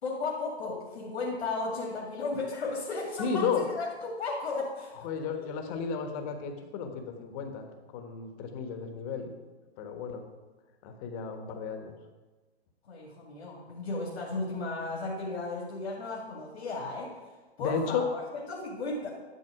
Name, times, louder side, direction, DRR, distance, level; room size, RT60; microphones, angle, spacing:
voice 1, 0.0-4.9 5.3-5.5 12.8-19.1, left 3 dB, 70° left, -2 dB, 2.1 m, -35 dB
voice 2, 3.2-3.7 5.0-7.7 7.9-9.3 9.8-10.2 10.8-12.0 17.6-18.0, left 6 dB, 35° left, 5 dB, 1.4 m, -33 dB
11.5 x 7.2 x 4.8 m, 1.3 s
hypercardioid pair, 125°, 33 cm